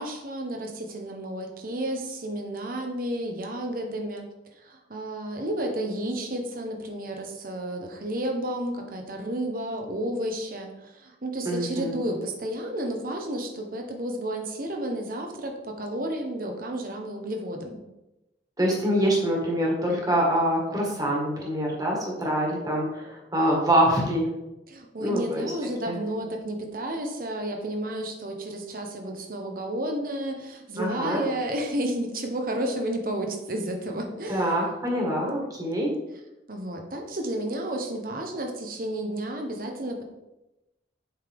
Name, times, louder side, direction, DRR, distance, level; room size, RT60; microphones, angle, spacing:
voice 1, 0.0-4.2 4.5-17.8 24.7-34.5 36.5-40.0, right 1 dB, 50° right, 3 dB, 1.2 m, -32 dB
voice 2, 11.5-11.9 18.6-24.3 25.0-25.5 25.9-26.0 30.8-31.2 34.3-35.9, equal, 20° right, -2 dB, 1.9 m, -25 dB
8.0 x 5.7 x 3.6 m, 0.96 s
head